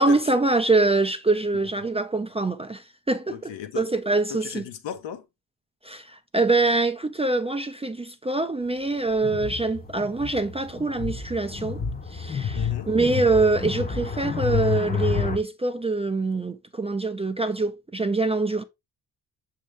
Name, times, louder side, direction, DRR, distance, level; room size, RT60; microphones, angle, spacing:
voice 1, 0.0-3.3 3.7-4.6 5.8-11.8 12.1-18.6, right 3 dB, 15° right, 0.4 m, -24 dB
voice 2, 3.3-3.9 4.3-5.2 12.5-12.9, left 9 dB, 75° left, 0.8 m, -36 dB
sound 1, 9.2-15.4, left 6 dB, 20° left, 0.7 m, -29 dB
6.1 x 2.7 x 3.1 m
supercardioid pair, 50°, 45 cm